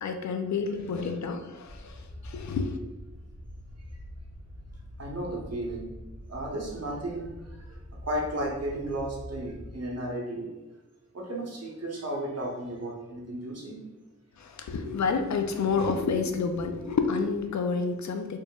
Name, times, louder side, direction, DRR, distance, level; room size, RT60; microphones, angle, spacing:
voice 1, 0.0-2.8 14.4-18.4, left 5 dB, 70° left, 6 dB, 0.5 m, -29 dB
sound 1, 1.6-9.8, equal, 5° right, 1.0 m, -45 dB
voice 2, 5.0-5.9 6.3-10.5 11.1-13.8, right 1 dB, 55° right, -2 dB, 1.1 m, -34 dB
4.4 x 3.2 x 2.3 m, 1.1 s
wide cardioid pair, 75°, 30 cm